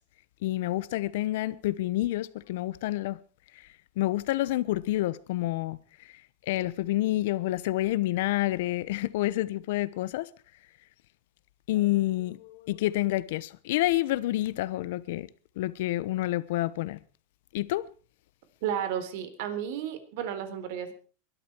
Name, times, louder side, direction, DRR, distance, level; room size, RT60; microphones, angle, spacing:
voice 1, 0.4-3.2 4.0-5.8 6.5-10.3 11.7-15.3 15.6-17.0 17.5-17.8, left 16 dB, 65° left, 1.0 m, -28 dB
voice 2, 18.6-20.9, right 9 dB, 60° right, 3.7 m, -32 dB
22.5 x 12.5 x 4.6 m
supercardioid pair, 155°, 0 cm